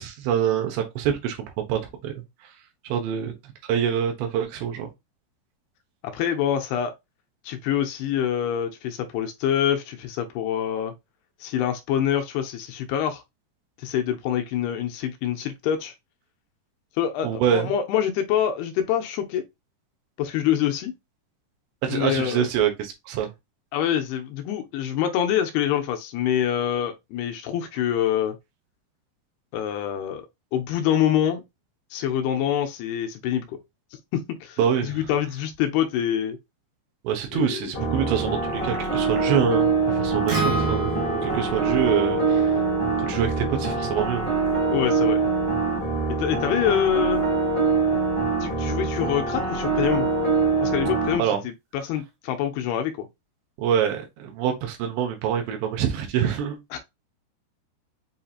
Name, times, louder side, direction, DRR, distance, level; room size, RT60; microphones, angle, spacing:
voice 1, 0.0-1.4 1.7-2.1 2.8-3.3 3.7-4.9 17.2-17.7 21.8-23.3 34.6-35.0 37.0-40.9 41.2-42.6 43.0-44.3 51.2-51.4 53.6-56.6, right 8 dB, 85° right, 3.3 m, -25 dB
voice 2, 6.0-6.9 7.4-10.9 11.4-13.2 13.8-15.9 17.0-19.4 20.2-20.9 21.9-22.5 23.7-28.4 29.5-30.3 30.5-31.4 31.9-33.6 34.1-36.4 37.3-37.8 44.7-45.2 46.1-47.2 48.4-50.1 50.6-53.1 56.7-56.8, left 10 dB, 80° left, 2.6 m, -25 dB
sound 1, 37.7-51.1, right 4 dB, 20° left, 0.7 m, -24 dB
Acoustic guitar, 40.3-44.5, right 3 dB, 70° right, 1.3 m, -31 dB
7.7 x 2.7 x 2.4 m
omnidirectional pair, 4.9 m